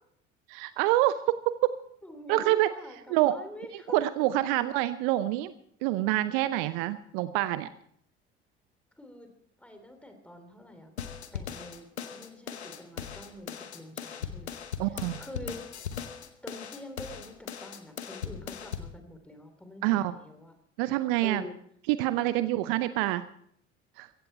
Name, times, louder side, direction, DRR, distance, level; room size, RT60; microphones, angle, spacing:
voice 1, 0.5-1.8 2.3-2.7 3.1-3.3 3.9-5.5 5.8-7.7 14.8-15.2 19.8-20.1 20.8-21.4 21.9-23.2 24.0-24.1, right 15 dB, 55° right, 14 dB, 0.7 m, -26 dB
voice 2, 2.0-4.3 9.0-9.3 9.6-10.9 11.3-15.6 16.4-20.5 21.2-21.6 22.1-22.3, left 1 dB, 5° left, 6 dB, 3.2 m, -46 dB
sound 1, 11.0-19.0, left 7 dB, 80° left, 1.1 m, -39 dB
15.5 x 15.5 x 4.4 m, 0.67 s
figure-of-eight pair, 60°, 33 cm